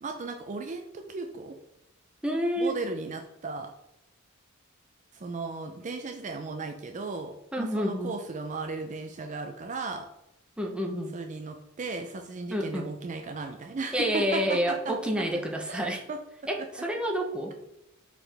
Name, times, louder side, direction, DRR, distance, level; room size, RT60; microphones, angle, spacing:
voice 1, 0.0-1.6 2.6-3.7 5.1-10.1 11.1-14.6 14.9-15.0 15.7-16.2, right 3 dB, 35° right, 5 dB, 0.4 m, -36 dB
voice 2, 2.2-2.8 7.5-8.1 10.6-11.1 12.5-12.9 13.9-16.0 16.5-17.5, equal, 5° right, 1 dB, 0.7 m, -28 dB
5.7 x 4.9 x 3.3 m, 0.85 s
head